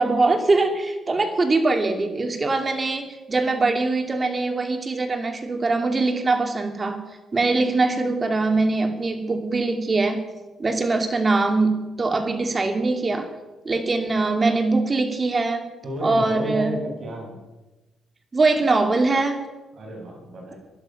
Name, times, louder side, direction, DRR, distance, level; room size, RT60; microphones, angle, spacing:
voice 1, 0.0-7.0 7.3-10.2 10.6-13.3 13.6-15.7 16.0-16.8 18.3-19.4, right 3 dB, 30° right, 5 dB, 2.6 m, -22 dB
voice 2, 15.8-17.4 19.8-20.6, right 1 dB, 50° right, 0 dB, 7.0 m, -31 dB
18.5 x 11.5 x 5.7 m, 1.1 s
cardioid pair, 90°, 0 cm